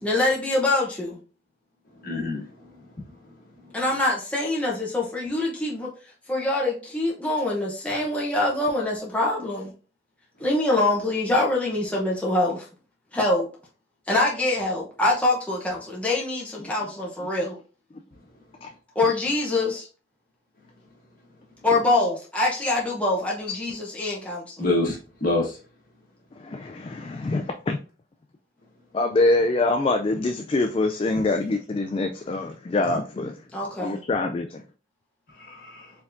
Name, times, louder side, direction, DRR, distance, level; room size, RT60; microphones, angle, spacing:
voice 1, 0.0-1.2 3.7-5.9 6.3-9.7 10.4-12.7 13.1-13.5 14.1-17.6 18.9-19.9 21.6-24.6 33.5-34.0, left 2 dB, 10° left, -4 dB, 0.8 m, -24 dB
voice 2, 2.0-2.7 24.6-25.6 35.4-35.9, left 2 dB, 50° left, -2 dB, 1.8 m, -27 dB
voice 3, 26.4-27.8 28.9-33.3 33.8-34.6, left 2 dB, 30° left, 5 dB, 0.3 m, -24 dB
4.5 x 3.5 x 2.6 m, 0.36 s
head